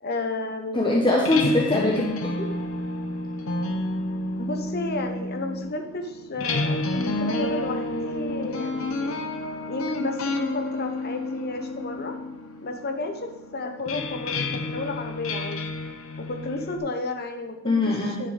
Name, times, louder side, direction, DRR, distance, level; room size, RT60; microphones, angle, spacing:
voice 1, 0.0-0.9 4.4-9.1 9.7-12.1 12.6-15.6 16.2-18.3, left 2 dB, 50° left, 5 dB, 1.1 m, -32 dB
voice 2, 0.7-2.5 17.6-18.2, left 2 dB, 25° left, -2 dB, 1.1 m, -22 dB
sound 1, 1.1-16.8, left 2 dB, 80° left, 1.0 m, -30 dB
9.8 x 6.5 x 5.1 m, 1.0 s
head